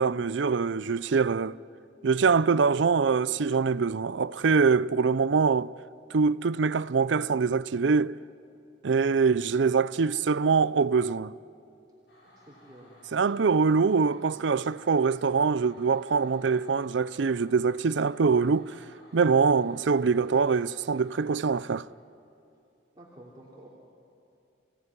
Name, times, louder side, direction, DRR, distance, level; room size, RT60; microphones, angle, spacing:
voice 1, 0.0-1.6 2.0-5.7 6.1-8.2 8.8-11.3 13.1-18.8 19.1-21.9, right 5 dB, 85° right, 0.5 m, -24 dB
voice 2, 4.7-5.2 12.3-13.0 22.9-23.7, right 1 dB, 20° right, 3.1 m, -51 dB
sound 1, 12.1-21.7, left 1 dB, 65° left, 7.3 m, -57 dB
28.5 x 17.5 x 9.8 m
head